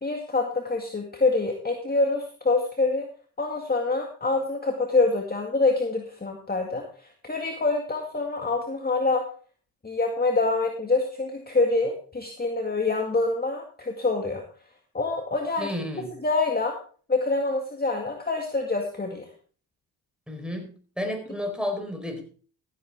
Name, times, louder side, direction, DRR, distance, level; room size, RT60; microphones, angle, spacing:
voice 1, 0.0-3.1 3.4-6.8 7.2-9.2 9.8-14.4 14.9-15.7 16.2-16.7 17.1-19.3, left 3 dB, 20° left, 2 dB, 2.1 m, -25 dB
voice 2, 15.6-16.1 20.3-20.7 21.0-22.2, left 1 dB, ahead, 5 dB, 4.5 m, -31 dB
14.5 x 8.8 x 3.6 m, 0.41 s
supercardioid pair, 60°, 45 cm